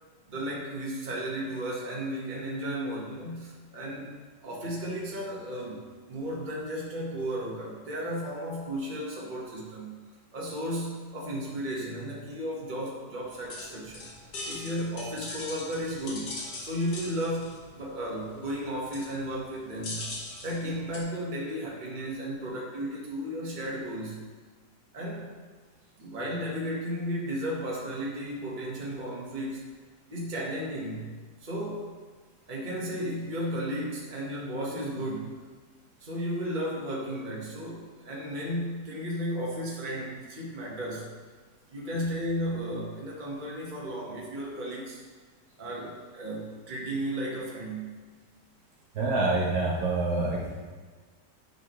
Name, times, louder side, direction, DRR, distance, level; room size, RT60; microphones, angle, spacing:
voice 1, 0.3-4.1 4.4-10.0 10.3-14.1 14.4-17.5 17.7-20.1 20.4-24.2 24.9-25.3 26.0-29.6 30.1-31.2 31.4-31.9 32.5-35.4 36.0-41.1 41.7-45.0 45.6-48.0, equal, 30° right, -4 dB, 1.5 m, -34 dB
sound 1, 13.2-21.0, left 2 dB, 65° left, 1.8 m, -41 dB
voice 2, 48.9-50.6, right 2 dB, 65° right, -4 dB, 1.6 m, -27 dB
9.6 x 6.1 x 3.1 m, 1.4 s
omnidirectional pair, 1.8 m